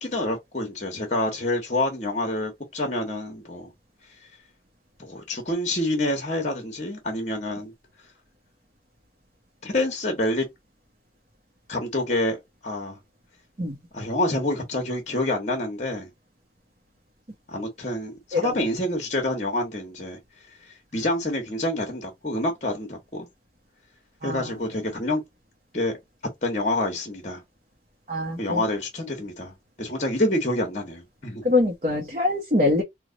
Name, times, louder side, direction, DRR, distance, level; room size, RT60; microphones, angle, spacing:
voice 1, 0.0-3.7 5.0-7.7 9.6-10.5 11.7-12.4 12.6-13.0 13.9-16.1 17.5-20.2 20.6-23.3 24.2-25.2 25.7-25.9 26.4-27.4 28.4-31.5, left 1 dB, 40° left, 1.0 m, -27 dB
voice 2, 24.2-24.5 28.1-28.7 31.4-32.8, left 2 dB, 40° right, 0.7 m, -24 dB
3.1 x 2.2 x 3.8 m
head